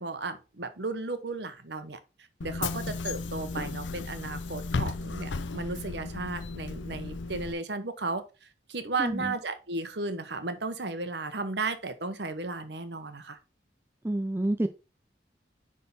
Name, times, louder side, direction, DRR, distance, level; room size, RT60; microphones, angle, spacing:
voice 1, 0.0-2.0 2.4-8.2 8.7-13.4, right 3 dB, 70° right, 1.1 m, -34 dB
Bus / Engine, 2.4-7.5, left 3 dB, 90° left, 0.6 m, -34 dB
voice 2, 9.0-9.3 14.0-14.7, right 1 dB, 15° right, 0.4 m, -28 dB
10.0 x 3.7 x 4.0 m
head